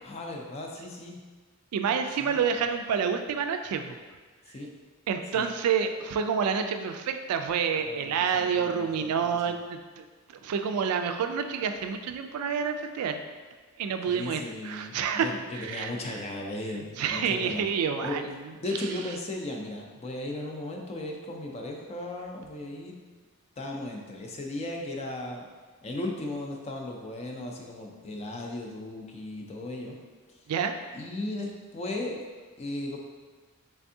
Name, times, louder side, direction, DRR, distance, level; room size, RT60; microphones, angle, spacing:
voice 1, 0.0-1.2 2.2-2.4 4.5-4.7 5.3-5.5 7.8-9.5 14.1-17.6 18.0-18.2 18.6-23.0 23.6-25.5 25.8-30.0 30.3-30.4 30.9-32.2 32.6-33.0, left 1 dB, 30° left, 1 dB, 0.4 m, -36 dB
voice 2, 1.7-4.0 5.1-13.2 13.8-15.3 15.5-15.9 17.0-18.3 30.5-30.7, right 6 dB, 85° right, 7 dB, 0.3 m, -28 dB
3.4 x 3.4 x 2.6 m, 1.4 s
head